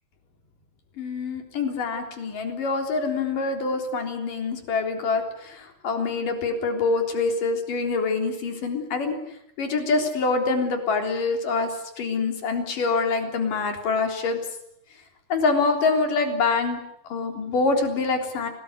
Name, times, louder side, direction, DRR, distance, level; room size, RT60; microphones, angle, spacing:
voice 1, 1.0-9.2 9.6-14.4 15.3-16.8 17.1-18.5, left 4 dB, 50° left, 5 dB, 5.0 m, -25 dB
27.5 x 19.5 x 9.9 m, 0.77 s
omnidirectional pair, 4.9 m